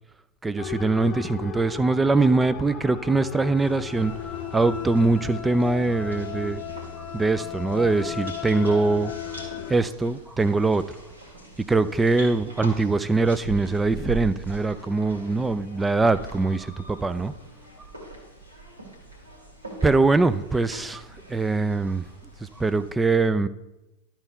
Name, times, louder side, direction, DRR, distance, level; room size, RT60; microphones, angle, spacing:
voice 1, 0.4-4.1 4.5-6.6 7.1-9.1 9.7-11.0 11.7-17.3 19.8-22.1 22.4-23.5, right 3 dB, 10° right, 15 dB, 0.4 m, -22 dB
sound 1, 0.6-9.8, left 10 dB, 30° left, 0.8 m, -36 dB
sound 2, 3.5-22.9, right 3 dB, 80° right, 2.4 m, -42 dB
12.0 x 4.4 x 5.5 m, 0.96 s
figure-of-eight pair, 90°, 0 cm